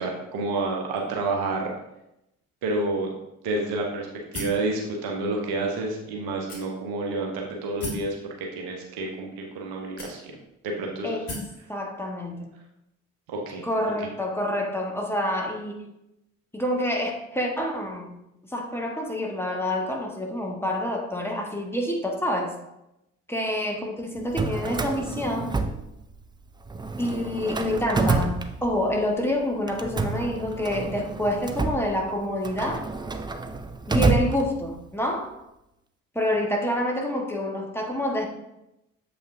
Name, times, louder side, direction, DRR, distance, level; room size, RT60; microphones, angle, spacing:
voice 1, 0.0-1.7 2.6-3.1 3.4-4.1 4.3-7.3 7.6-10.2 10.6-11.2 13.3-13.6, right 2 dB, 65° right, 0 dB, 1.2 m, -29 dB
sound 1, 4.3-4.7 5.5-5.6 6.5-7.0 7.8-8.1 9.1-9.2 10.0-10.5 11.3-11.6, left 1 dB, 60° left, 2.3 m, -35 dB
voice 2, 11.0-11.4 11.7-12.5 13.6-15.8 16.5-18.2 18.5-22.5 23.3-25.6 27.0-32.9 33.9-35.4 36.1-38.3, left 1 dB, 5° left, 0 dB, 1.3 m, -27 dB
Drawer open or close, 24.2-26.4 26.7-29.1 29.7-34.9, right 3 dB, 10° right, 0.4 m, -29 dB
7.3 x 5.4 x 2.7 m, 0.86 s
figure-of-eight pair, 40°, 40 cm